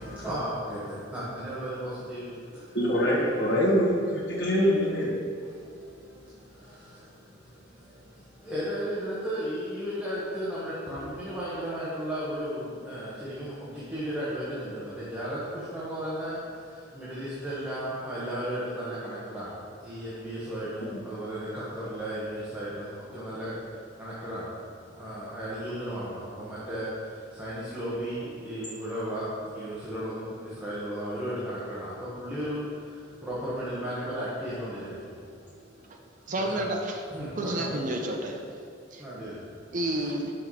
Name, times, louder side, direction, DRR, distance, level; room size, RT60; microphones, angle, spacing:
voice 1, 0.0-2.8 3.1-3.2 5.4-36.6 37.1-37.7 39.0-40.1, equal, 10° right, -10 dB, 1.2 m, -35 dB
voice 2, 2.7-5.2 20.8-20.9, equal, 70° left, -10 dB, 1.4 m, -24 dB
voice 3, 36.3-37.0 37.4-38.4 38.9-39.0 39.7-40.3, right 1 dB, 45° right, 1 dB, 0.7 m, -30 dB
6.3 x 5.7 x 4.7 m, 2.4 s
head